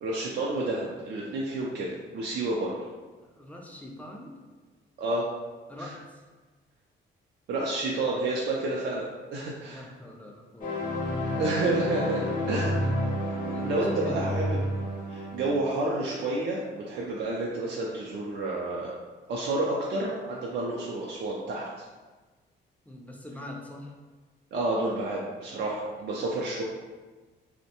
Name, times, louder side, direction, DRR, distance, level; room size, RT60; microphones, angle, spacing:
voice 1, 0.0-2.7 5.0-5.3 5.8-5.9 7.5-9.0 9.3-9.9 11.4-12.8 13.6-14.6 15.1-18.9 19.3-21.8 24.5-26.6, right 2 dB, 60° right, -4 dB, 0.4 m, -30 dB
voice 2, 3.3-4.3 5.7-6.0 9.7-11.4 13.5-13.7 14.0-14.4 22.9-23.9, left 1 dB, 5° left, 0 dB, 0.4 m, -43 dB
sound 1, 10.6-15.6, equal, 45° left, 0.6 m, -30 dB
2.6 x 2.1 x 2.8 m, 1.3 s
cardioid pair, 90°, 20 cm